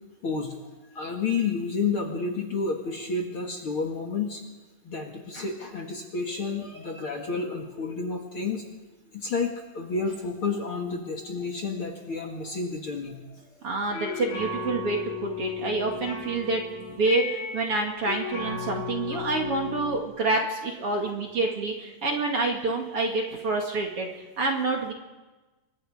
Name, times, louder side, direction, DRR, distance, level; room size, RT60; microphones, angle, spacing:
voice 1, 0.2-0.5 0.9-4.4 4.8-8.6 9.1-13.6 19.1-19.4, left 4 dB, 45° left, 2 dB, 2.4 m, -30 dB
voice 2, 13.6-24.1 24.4-24.9, right 3 dB, 45° right, 1 dB, 2.8 m, -27 dB
sound 1, 13.7-20.0, left 5 dB, 75° left, 4.4 m, -35 dB
27.5 x 24.0 x 5.1 m, 1.2 s
omnidirectional pair, 4.0 m